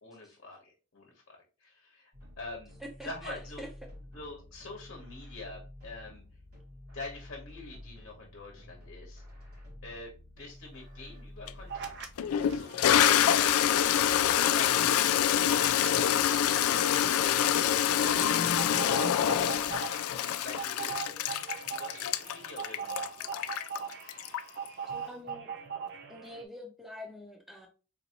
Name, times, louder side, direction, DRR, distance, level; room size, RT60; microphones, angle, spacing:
voice 1, 0.0-2.1 2.4-2.7 3.0-3.6 4.1-6.2 6.9-9.2 9.8-10.1 10.4-13.5 14.3-17.5 17.9-18.4 20.2-21.3 21.7-23.6, left 2 dB, 55° left, 1.0 m, -45 dB
sound 1, 2.1-12.6, left 1 dB, 80° right, 2.0 m, -50 dB
voice 2, 2.8-3.7 24.9-25.5 26.1-27.7, equal, ahead, 0.7 m, -45 dB
Toilet flush, 11.5-11.6 12.2-24.7, left 10 dB, 75° left, 0.3 m, -26 dB
sound 2, 11.7-12.1 12.4-26.4, right 7 dB, 50° right, 0.5 m, -41 dB
4.0 x 2.7 x 2.8 m
head